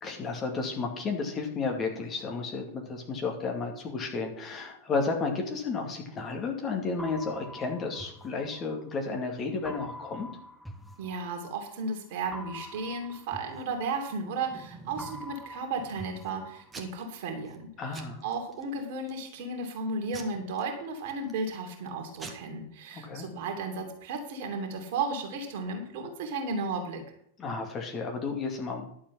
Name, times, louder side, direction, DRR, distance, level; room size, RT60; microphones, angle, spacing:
voice 1, 0.0-10.3 17.8-18.2 23.0-23.2 27.4-28.9, left 4 dB, 25° left, 2 dB, 2.4 m, -32 dB
sound 1, 7.0-9.1 9.6-11.7 12.3-14.6 15.0-17.1, equal, ahead, 1.1 m, -46 dB
voice 2, 11.0-17.7 18.0-27.0, right 3 dB, 50° right, 3 dB, 2.8 m, -34 dB
Packing tape duct tape / Tearing, 13.9-15.3 15.8-16.3 16.7-17.2 17.5-17.6 17.9-18.6 19.1-19.4 20.1-21.4 21.9-22.0 22.2-22.3, right 3 dB, 15° right, 1.7 m, -46 dB
11.5 x 7.3 x 5.7 m, 0.69 s
figure-of-eight pair, 90°, 0 cm